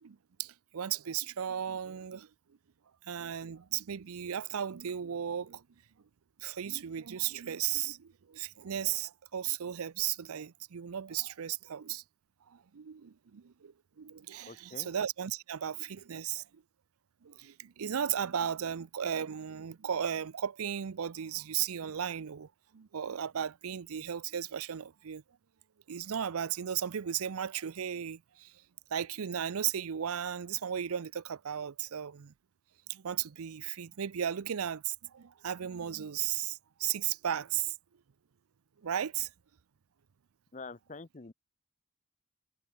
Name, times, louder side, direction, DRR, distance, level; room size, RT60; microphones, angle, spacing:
voice 1, 0.0-2.3 3.1-5.6 6.4-12.0 12.7-13.7 14.0-16.4 17.2-22.5 22.7-25.2 25.9-28.5 28.9-32.3 32.9-37.7 38.8-39.3, right 9 dB, 85° right, 0.5 m, -35 dB
voice 2, 14.4-14.9 40.5-41.3, left 3 dB, 35° left, 0.7 m, -46 dB
head